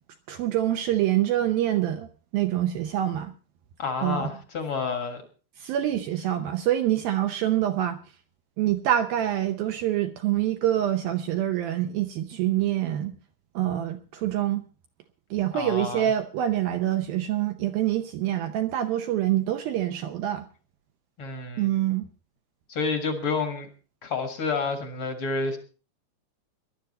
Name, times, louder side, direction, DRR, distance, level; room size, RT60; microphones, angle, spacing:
voice 1, 0.3-2.1 2.3-3.3 4.0-4.3 5.6-8.0 8.6-13.1 13.6-14.6 15.3-20.5 21.6-22.1, right 12 dB, 75° right, 7 dB, 2.2 m, -26 dB
voice 2, 3.8-5.2 15.5-16.1 21.2-21.7 22.7-23.7 24.0-25.6, left 4 dB, 50° left, 7 dB, 1.6 m, -29 dB
20.0 x 11.5 x 4.2 m, 0.36 s
omnidirectional pair, 5.0 m